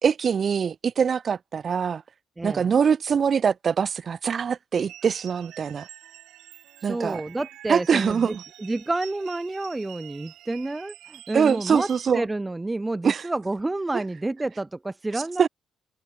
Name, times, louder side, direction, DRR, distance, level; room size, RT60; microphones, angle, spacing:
voice 1, 0.0-2.0 2.4-5.9 6.8-7.2 7.7-8.4 11.3-12.3 13.0-13.2 13.9-14.0 15.4-15.5, right 6 dB, 50° right, 2.6 m, -23 dB
voice 2, 2.4-2.7 6.8-8.3 8.6-11.9 12.1-15.5, right 2 dB, 15° right, 1.2 m, -29 dB
sound 1, 4.9-12.1, right 14 dB, 85° right, 3.9 m, -47 dB
cardioid pair, 90°, 0 cm